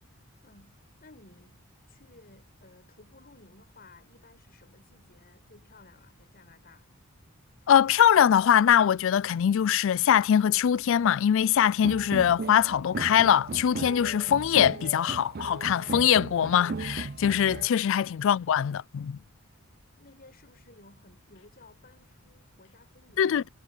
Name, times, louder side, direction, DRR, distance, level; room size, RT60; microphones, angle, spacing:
voice 1, 0.4-6.9 18.2-18.3 20.0-23.5, left 2 dB, 45° left, 6.1 m, -56 dB
voice 2, 7.7-19.2 23.2-23.5, left 9 dB, 60° left, 0.3 m, -22 dB
sound 1, 11.8-17.7, right 3 dB, 45° right, 0.5 m, -37 dB
head